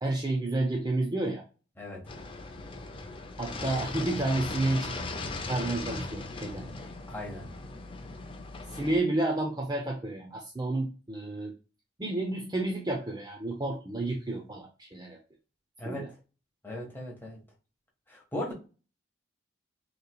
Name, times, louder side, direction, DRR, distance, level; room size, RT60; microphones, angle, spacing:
voice 1, 0.0-1.4 3.4-4.9 5.5-6.6 8.7-11.5 12.0-15.2 15.8-16.1, right 2 dB, 20° right, 0.6 m, -30 dB
sound 1, 2.1-9.0, left 2 dB, 25° left, 0.5 m, -38 dB
voice 2, 7.1-7.5 15.8-16.1 16.6-17.4 18.1-18.5, left 1 dB, 10° left, 1.3 m, -37 dB
5.2 x 3.1 x 2.3 m
head